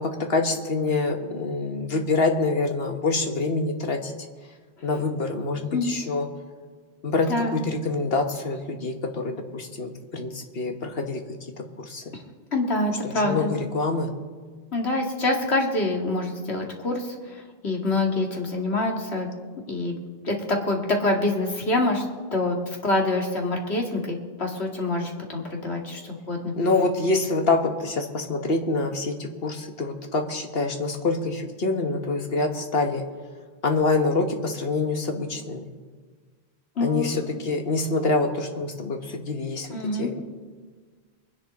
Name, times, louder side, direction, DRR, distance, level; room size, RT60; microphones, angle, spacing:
voice 1, 0.0-4.1 4.8-6.3 7.0-11.2 11.8-12.1 13.0-14.1 26.5-33.0 33.6-35.6 36.8-40.2, left 3 dB, 70° left, 4 dB, 1.6 m, -26 dB
voice 2, 7.3-7.6 12.5-13.5 14.7-17.1 17.6-19.3 19.7-20.0 20.2-22.0 22.3-26.5 36.8-37.2 39.7-40.1, left 2 dB, 85° left, 1 dB, 2.4 m, -26 dB
23.5 x 10.5 x 4.2 m, 1.5 s
omnidirectional pair, 1.1 m